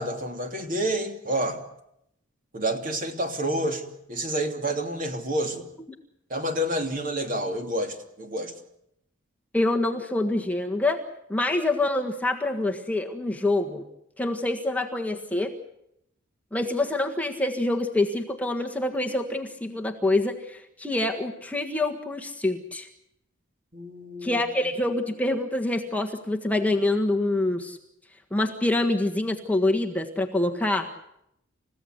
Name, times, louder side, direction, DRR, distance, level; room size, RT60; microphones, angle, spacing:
voice 1, 0.0-1.6 2.5-5.6 6.3-8.5 23.7-24.4, right 1 dB, 40° right, 5 dB, 3.0 m, -29 dB
voice 2, 9.5-11.0 11.3-13.8 14.2-15.5 16.5-22.9 24.2-27.8 28.3-30.9, left 2 dB, 5° left, 2 dB, 1.5 m, -26 dB
29.5 x 16.0 x 8.1 m, 0.78 s
head